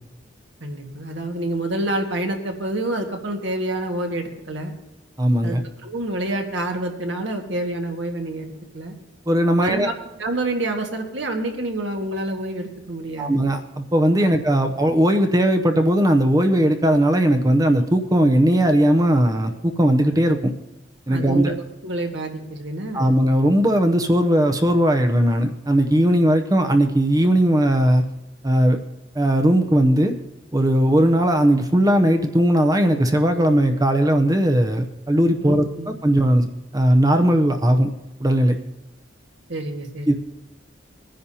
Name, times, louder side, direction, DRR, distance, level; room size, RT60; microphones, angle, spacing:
voice 1, 0.6-4.7 5.4-5.6 5.8-8.9 9.6-9.9 10.2-13.4 14.2-14.6 21.1-21.6 21.8-23.2 35.4-35.9 39.5-40.2, right 1 dB, 70° right, 3 dB, 1.7 m, -28 dB
voice 2, 5.2-5.6 9.3-9.9 13.2-20.5 21.1-21.5 22.9-28.0 28.4-28.8 29.1-30.1 30.5-35.7 36.0-36.5 36.7-37.9 38.2-38.6 40.1-40.2, right 1 dB, 20° right, 6 dB, 0.7 m, -18 dB
21.0 x 10.0 x 2.8 m, 0.95 s
head